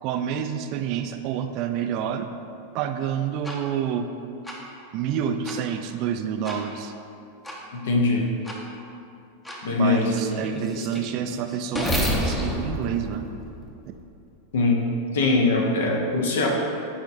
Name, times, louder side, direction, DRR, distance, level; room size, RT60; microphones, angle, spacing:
voice 1, 0.0-2.3 2.7-4.1 4.9-6.9 9.7-13.3, right 8 dB, 40° right, 7 dB, 0.3 m, -28 dB
sound 1, 3.4-3.6 4.4-4.6 5.4-5.6 6.4-6.6 7.4-7.6 8.4-8.6 9.4-9.6 10.1-14.0, equal, 10° left, 0.8 m, -30 dB
voice 2, 7.7-8.3 9.6-10.1 14.5-14.8 15.1-16.5, left 3 dB, 60° left, 1 dB, 0.9 m, -22 dB
9.0 x 4.3 x 2.6 m, 2.6 s
figure-of-eight pair, 90°, 0 cm